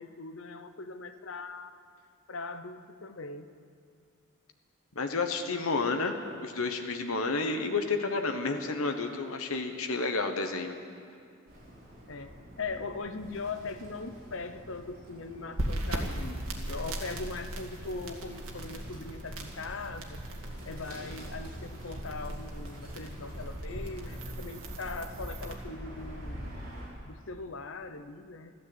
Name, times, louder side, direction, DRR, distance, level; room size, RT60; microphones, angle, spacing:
voice 1, 0.0-1.8 2.3-3.5 12.1-20.2 20.7-26.6 27.0-28.5, left 3 dB, 65° left, 10 dB, 0.8 m, -40 dB
voice 2, 4.9-6.1 6.4-10.7, left 3 dB, 80° left, 5 dB, 1.2 m, -30 dB
Bird, 11.5-26.9, equal, 45° right, 4.6 m, -47 dB
sound 1, 15.6-25.5, right 1 dB, 90° right, 2.0 m, -38 dB
14.0 x 12.5 x 8.0 m, 2.3 s
head